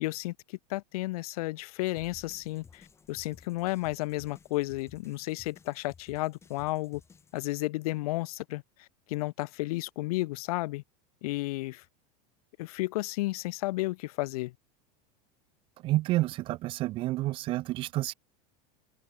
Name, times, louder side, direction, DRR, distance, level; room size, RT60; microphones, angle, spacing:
voice 1, 0.0-7.0 7.3-10.8 11.2-11.8 12.6-14.5, left 20 dB, 65° left, 0.8 m, -33 dB
sound 1, 2.0-7.4, left 5 dB, 15° left, 5.5 m, -56 dB
voice 2, 15.8-18.1, right 17 dB, 25° right, 0.5 m, -29 dB
supercardioid pair, 170°, 20 cm